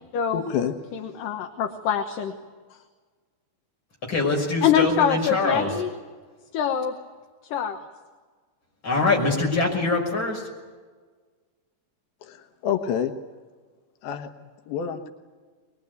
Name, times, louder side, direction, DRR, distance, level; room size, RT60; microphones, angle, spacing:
voice 1, 0.3-0.7 12.2-13.1 14.0-15.1, left 8 dB, 90° left, 6 dB, 3.1 m, -28 dB
voice 2, 0.9-2.3 4.6-5.9 6.5-6.9 7.5-7.9, left 8 dB, 70° left, 5 dB, 2.7 m, -24 dB
voice 3, 4.1-5.7 8.8-10.4, left 3 dB, 30° left, 0 dB, 6.5 m, -23 dB
22.0 x 22.0 x 9.4 m, 1.5 s
omnidirectional pair, 4.2 m